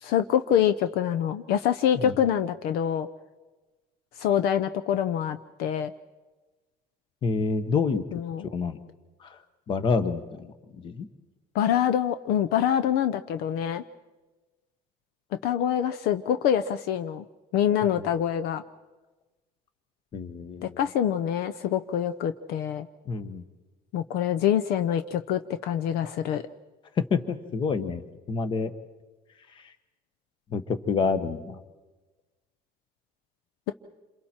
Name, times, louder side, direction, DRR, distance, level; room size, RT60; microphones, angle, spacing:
voice 1, 0.0-3.1 4.2-5.9 8.1-8.5 11.5-13.8 15.4-17.2 17.5-18.6 20.6-22.9 23.9-26.4, left 9 dB, 65° left, 11 dB, 0.8 m, -25 dB
voice 2, 7.2-8.0 8.5-8.8 9.2-9.4 9.7-11.1 20.1-20.8 23.1-23.4 27.0-28.0 28.3-28.7 30.5-31.6, left 5 dB, 30° left, 11 dB, 1.2 m, -28 dB
28.0 x 27.5 x 4.5 m, 1.2 s
cardioid pair, 180°, 17 cm